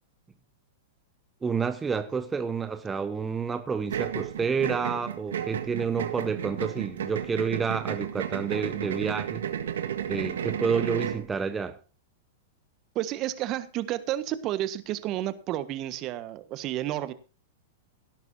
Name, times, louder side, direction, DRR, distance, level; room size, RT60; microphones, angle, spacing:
voice 1, 1.4-9.5 10.1-11.8, right 5 dB, 15° right, 1.1 m, -29 dB
sound 1, 3.9-11.3, right 9 dB, 75° right, 1.6 m, -33 dB
voice 2, 12.9-17.1, right 13 dB, 40° right, 1.4 m, -31 dB
17.5 x 12.0 x 2.8 m
hypercardioid pair, 110°, 0 cm